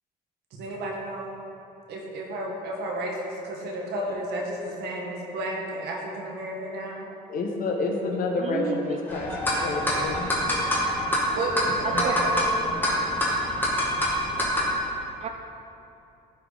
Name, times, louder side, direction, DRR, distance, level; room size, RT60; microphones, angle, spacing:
voice 1, 0.5-1.3 1.9-7.0 11.4-12.5, right 1 dB, 75° right, 0 dB, 1.6 m, -32 dB
voice 2, 7.3-10.3 11.9-12.0, left 3 dB, 55° left, 1 dB, 1.5 m, -29 dB
voice 3, 8.4-9.0 11.8-12.1 15.0-15.3, right 7 dB, 40° right, 5 dB, 0.4 m, -32 dB
sound 1, 9.1-14.7, equal, 10° left, 2.1 m, -26 dB
14.5 x 4.9 x 4.1 m, 2.8 s
cardioid pair, 110°, 17 cm